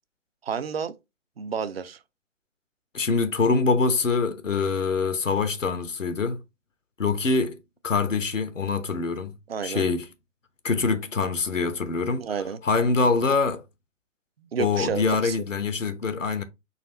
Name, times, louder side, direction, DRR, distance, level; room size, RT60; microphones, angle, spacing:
voice 1, 0.4-1.0 1.4-2.0 9.5-9.9 12.2-12.6 14.5-15.4, right 7 dB, 55° right, 0.5 m, -30 dB
voice 2, 2.9-6.4 7.0-7.6 7.8-9.3 9.6-10.1 10.6-12.3 12.6-13.6 14.6-16.4, left 4 dB, 85° left, 0.8 m, -24 dB
4.0 x 2.5 x 4.1 m
figure-of-eight pair, 135°, 37 cm